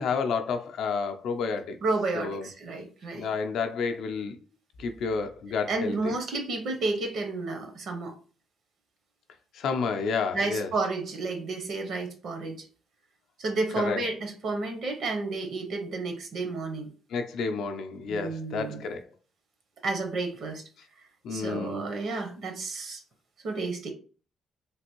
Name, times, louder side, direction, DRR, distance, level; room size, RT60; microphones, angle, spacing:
voice 1, 0.0-1.8 2.1-2.5 3.1-4.4 4.8-6.1 9.5-10.7 13.8-14.0 17.1-19.0 21.2-21.8, left 5 dB, 65° left, 0.5 m, -30 dB
voice 2, 1.8-3.3 5.7-8.1 10.3-12.7 13.4-16.9 18.1-18.8 19.8-20.6 21.3-23.0 23.4-23.9, right 3 dB, 55° right, 0.6 m, -31 dB
3.3 x 2.5 x 2.9 m
cardioid pair, 170°, 0 cm